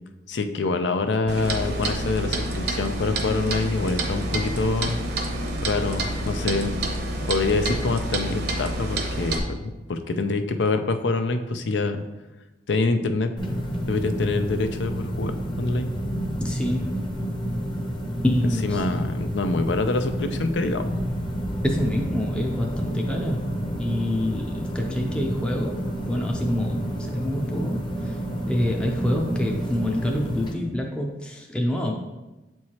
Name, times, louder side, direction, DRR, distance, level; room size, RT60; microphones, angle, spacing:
voice 1, 0.3-5.0 5.6-6.7 7.3-9.6 9.9-12.0 12.7-13.4 13.9-15.9 18.6-20.9, left 3 dB, 85° left, 8 dB, 0.5 m, -25 dB
Clock, 1.3-9.4, right 1 dB, 60° right, 0.8 m, -28 dB
sound 1, 13.4-30.5, equal, 25° left, 0.8 m, -29 dB
voice 2, 16.4-17.0 18.2-18.9 21.6-28.2 28.5-31.9, left 1 dB, 5° left, 0 dB, 0.5 m, -27 dB
7.3 x 4.6 x 2.9 m, 1.1 s
head